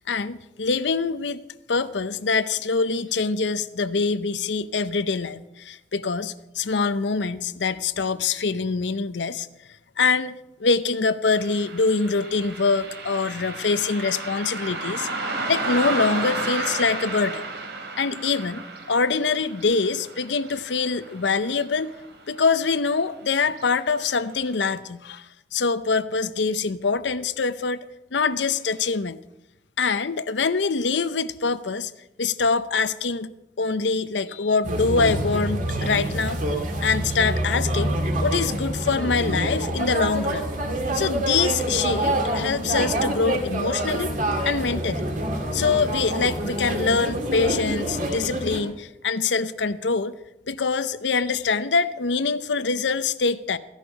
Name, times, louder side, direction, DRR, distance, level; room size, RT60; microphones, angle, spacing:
voice 1, 0.0-1.4 1.7-9.5 10.0-17.4 18.0-22.0 22.3-27.8 28.1-29.2 29.8-31.9 32.2-33.3 33.6-36.4 36.8-38.0 38.2-40.5 40.9-44.1 44.4-45.1 45.5-50.2 50.5-53.6, left 4 dB, 85° left, 14 dB, 0.7 m, -24 dB
Car passing by, 11.3-22.1 22.4-22.5 23.5-23.7 24.1-24.2 24.7-24.8, right 2 dB, 75° right, 2.9 m, -32 dB
sound 1, 34.6-48.6, right 1 dB, 45° right, 2.2 m, -26 dB
15.5 x 11.5 x 5.3 m, 0.92 s
head